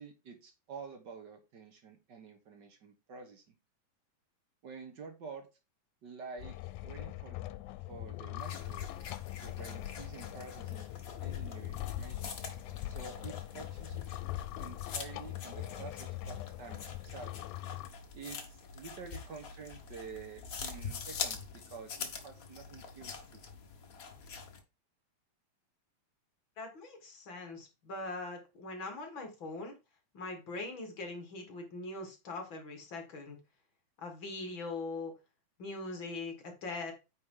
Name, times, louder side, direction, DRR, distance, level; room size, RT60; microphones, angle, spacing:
voice 1, 0.0-3.5 4.6-5.5 6.0-6.6 6.8-7.5 7.9-8.9 9.4-10.8 11.2-12.4 12.9-14.1 14.6-16.8 17.0-17.3 18.1-23.4, right 5 dB, 55° right, 5 dB, 1.2 m, -49 dB
sound 1, 6.4-17.9, left 16 dB, 85° left, 2.0 m, -42 dB
sound 2, 8.4-24.6, left 5 dB, 65° left, 0.8 m, -45 dB
voice 2, 26.6-29.7 30.1-33.4 34.0-35.1 35.6-36.9, left 3 dB, 45° left, 4 dB, 2.0 m, -41 dB
9.4 x 4.9 x 3.6 m, 0.28 s
omnidirectional pair, 3.4 m